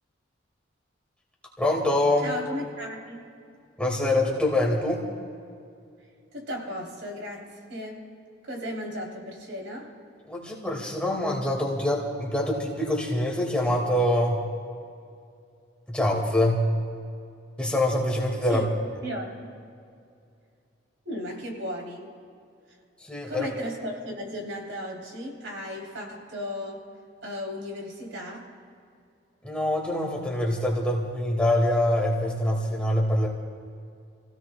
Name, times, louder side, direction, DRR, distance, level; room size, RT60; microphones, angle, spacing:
voice 1, 1.6-2.3 3.8-5.0 10.3-14.5 15.9-16.8 17.6-18.6 23.0-23.5 29.4-33.3, left 1 dB, 5° left, -2 dB, 2.0 m, -25 dB
voice 2, 2.2-3.2 6.3-8.0 8.4-9.9 18.5-18.6 19.0-19.5 21.0-22.1 23.3-26.8 27.2-28.5, equal, 80° right, 0 dB, 3.4 m, -35 dB
29.5 x 16.5 x 2.3 m, 2.4 s
head